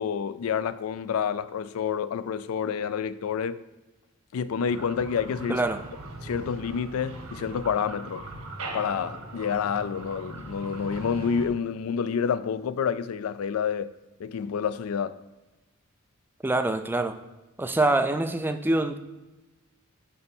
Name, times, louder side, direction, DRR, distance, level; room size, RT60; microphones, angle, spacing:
voice 1, 0.0-3.6 4.3-5.6 6.2-8.3 8.7-13.9 14.2-15.2, left 7 dB, 75° left, 0.4 m, -28 dB
Petroleum extraction mechanical pump, 4.6-11.5, right 2 dB, 80° right, 1.4 m, -40 dB
voice 2, 5.5-5.8 16.4-17.2 17.6-19.0, right 2 dB, 10° right, 0.4 m, -25 dB
6.8 x 5.4 x 4.4 m
head